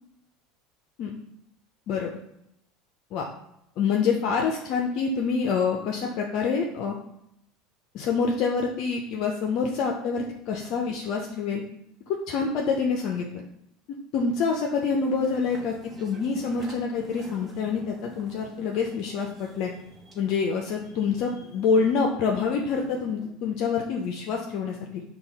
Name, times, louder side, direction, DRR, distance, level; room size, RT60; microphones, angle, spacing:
voice 1, 1.9-2.2 3.1-3.3 3.8-6.9 7.9-11.6 12.1-13.4 14.1-15.7 16.0-19.7 20.2-25.0, left 5 dB, 60° left, 1 dB, 0.6 m, -26 dB
sound 1, 15.0-23.3, left 1 dB, 20° right, 1.1 m, -46 dB
5.5 x 2.3 x 4.0 m, 0.80 s
supercardioid pair, 110°, 0 cm